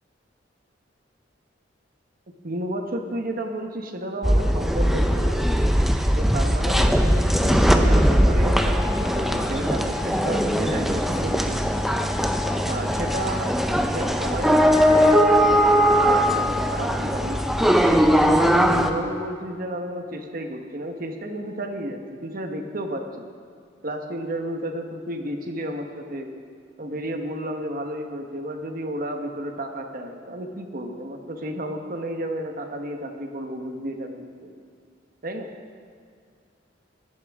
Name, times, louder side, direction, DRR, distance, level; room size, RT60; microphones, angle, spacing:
voice 1, 2.4-5.4 6.1-11.6 12.7-13.5 13.9-17.4 18.4-23.3 23.8-26.3 26.8-34.5 35.2-35.5, right 1 dB, 50° right, 4 dB, 1.1 m, -32 dB
sound 1, 4.2-18.9, equal, ahead, 0.6 m, -20 dB
17.0 x 13.0 x 3.6 m, 2.2 s
head